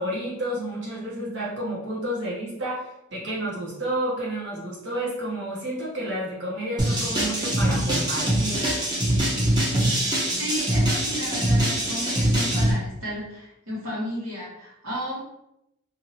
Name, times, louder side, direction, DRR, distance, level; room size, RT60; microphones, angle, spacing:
voice 1, 0.0-8.7, right 1 dB, 60° right, -6 dB, 1.2 m, -30 dB
sound 1, 6.8-12.7, right 1 dB, 20° right, 0.8 m, -23 dB
voice 2, 10.4-15.2, equal, 85° right, -7 dB, 1.5 m, -33 dB
2.7 x 2.7 x 3.0 m, 0.84 s
head